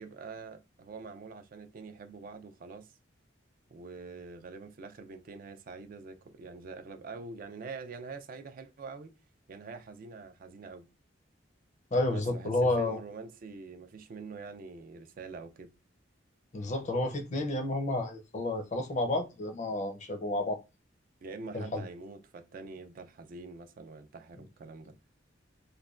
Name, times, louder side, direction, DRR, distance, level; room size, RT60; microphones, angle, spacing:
voice 1, 0.0-2.9 3.7-9.1 9.5-10.9 12.1-15.7 21.2-25.0, right 4 dB, 50° right, 0.3 m, -45 dB
voice 2, 11.9-13.0 16.5-20.6 21.5-21.8, left 2 dB, 40° left, 0.5 m, -30 dB
3.1 x 2.2 x 2.4 m
head